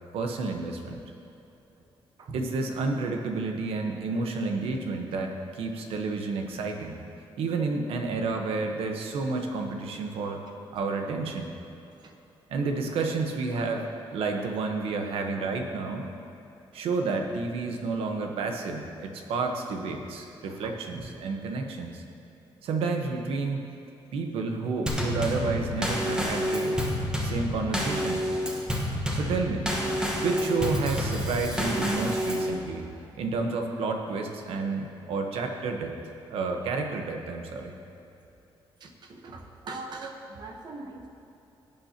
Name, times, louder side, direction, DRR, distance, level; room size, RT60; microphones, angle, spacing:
voice 1, 0.1-1.0 2.3-7.0 7.4-10.4 10.7-11.5 12.5-16.0 16.7-22.0 22.6-23.6 24.1-26.8 27.2-28.3 29.1-29.7 30.2-32.9 33.2-37.7, right 3 dB, 85° right, 3 dB, 1.2 m, -30 dB
voice 2, 20.5-21.0 38.8-41.1, right 3 dB, 50° right, 3 dB, 1.2 m, -41 dB
Drum kit / Snare drum / Bass drum, 24.9-32.5, equal, 10° right, 1.4 m, -29 dB
17.0 x 8.8 x 3.0 m, 2.9 s
cardioid pair, 140°, 9 cm